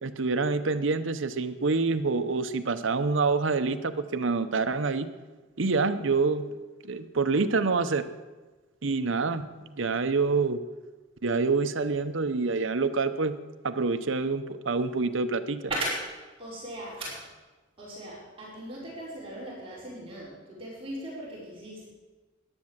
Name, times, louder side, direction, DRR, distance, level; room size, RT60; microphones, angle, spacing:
voice 1, 0.0-5.1 5.6-6.5 6.8-8.1 8.8-10.6 11.2-13.3 13.6-15.6, right 4 dB, 75° right, 11 dB, 0.8 m, -27 dB
voice 2, 16.4-17.1 17.8-21.9, right 1 dB, 30° right, -7 dB, 5.4 m, -37 dB
14.0 x 10.5 x 7.4 m, 1.2 s
head